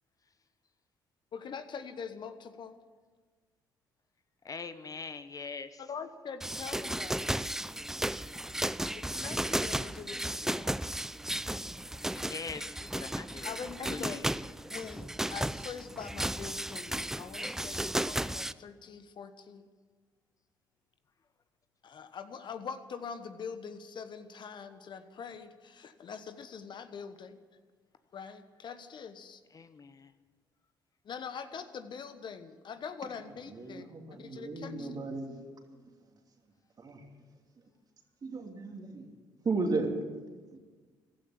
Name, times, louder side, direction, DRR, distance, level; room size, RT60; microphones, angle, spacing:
voice 1, 1.3-2.8 5.8-7.4 8.9-10.8 12.7-13.1 13.4-14.3 14.7-19.7 21.8-27.4 28.1-29.4 31.0-33.9 34.2-34.9, left 6 dB, 55° left, 1.2 m, -43 dB
voice 2, 4.4-5.8 12.1-13.6 13.9-14.2 29.5-30.1, left 5 dB, 40° left, 0.8 m, -42 dB
sound 1, 6.4-18.5, right 1 dB, 5° right, 0.5 m, -34 dB
voice 3, 33.5-35.4 36.8-37.0 38.2-39.1 39.4-40.0 40.5-40.6, right 3 dB, 45° right, 2.9 m, -34 dB
15.5 x 12.5 x 7.3 m
supercardioid pair, 60°, 10 cm